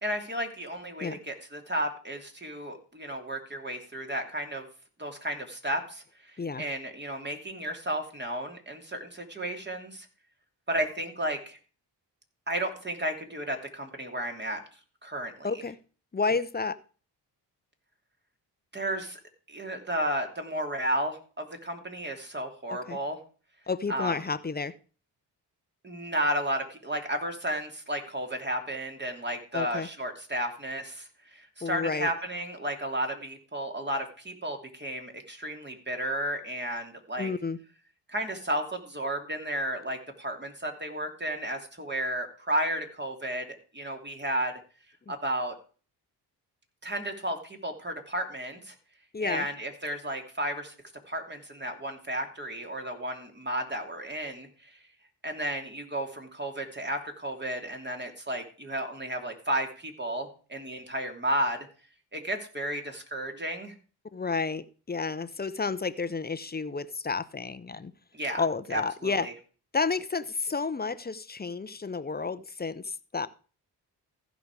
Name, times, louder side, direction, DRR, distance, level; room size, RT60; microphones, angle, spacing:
voice 1, 0.0-4.7 5.0-6.0 6.6-10.1 10.7-11.6 12.5-14.6 15.0-15.5 18.7-19.2 19.5-23.2 23.9-24.1 25.8-37.3 38.1-43.4 43.7-44.5 45.1-45.6 46.8-48.7 49.2-50.7 51.1-54.5 55.2-61.6 62.1-63.7 68.1-68.4 68.7-69.3, right 1 dB, 25° right, 4 dB, 2.7 m, -33 dB
voice 2, 15.4-15.8 16.1-16.8 22.7-23.0 23.7-24.7 29.5-29.9 31.6-32.1 37.2-37.6 49.1-49.5 64.1-67.9 68.4-69.3 69.7-73.3, left 4 dB, 25° left, 15 dB, 0.7 m, -31 dB
15.0 x 5.1 x 4.8 m, 0.38 s
supercardioid pair, 55°, 42 cm